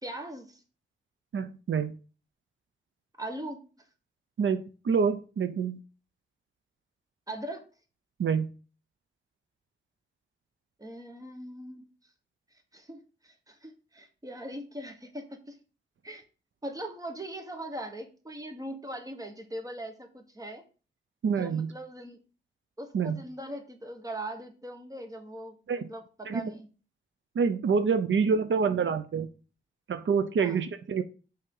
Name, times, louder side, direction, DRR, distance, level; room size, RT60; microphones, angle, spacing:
voice 1, 0.0-0.6 3.2-3.6 7.3-7.7 10.8-11.9 12.7-15.6 16.0-16.2 16.6-20.6 21.3-22.2 22.8-26.7 30.4-30.6, right 1 dB, 20° right, 5 dB, 1.1 m, -40 dB
voice 2, 1.3-1.9 4.4-5.8 8.2-8.5 21.2-21.7 22.9-23.2 25.7-25.9 26.3-26.5 27.4-29.3 29.9-31.0, right 6 dB, 75° right, 10 dB, 0.6 m, -27 dB
5.7 x 3.5 x 5.4 m, 0.36 s
wide cardioid pair, 100°, 20 cm